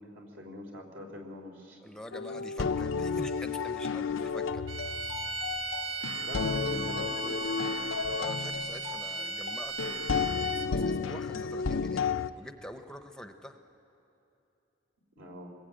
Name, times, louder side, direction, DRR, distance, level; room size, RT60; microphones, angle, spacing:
voice 1, 0.0-1.8 6.2-7.7 15.2-15.6, equal, 70° right, 2 dB, 3.5 m, -44 dB
voice 2, 1.8-4.6 8.2-12.0 12.4-13.6, left 1 dB, 5° left, 6 dB, 0.8 m, -45 dB
sound 1, 2.1-12.3, left 5 dB, 80° left, 0.6 m, -32 dB
sound 2, 4.7-10.9, right 3 dB, 85° right, 1.4 m, -36 dB
25.5 x 21.0 x 8.8 m, 2.9 s
head